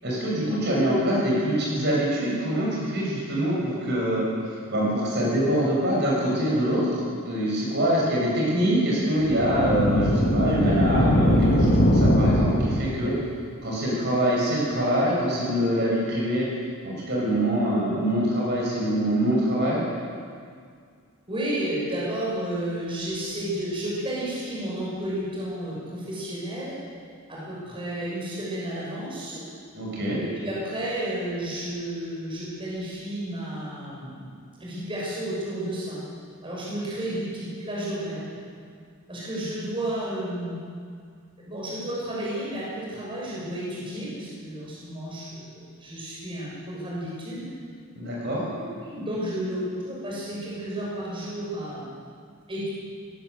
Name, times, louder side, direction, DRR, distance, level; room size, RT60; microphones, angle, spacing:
voice 1, 0.0-13.1 13.6-16.5 16.8-19.8 29.7-30.2 47.9-48.4, equal, 50° right, -5 dB, 6.8 m, -24 dB
sound 1, 9.2-13.0, equal, 45° left, 2.6 m, -21 dB
voice 2, 21.3-26.7 27.3-29.4 30.2-36.0 36.4-38.4 39.1-40.6 41.4-47.5 48.6-51.8 52.5-52.7, right 1 dB, 25° right, -6 dB, 6.9 m, -32 dB
18.5 x 18.0 x 8.2 m, 2.1 s
head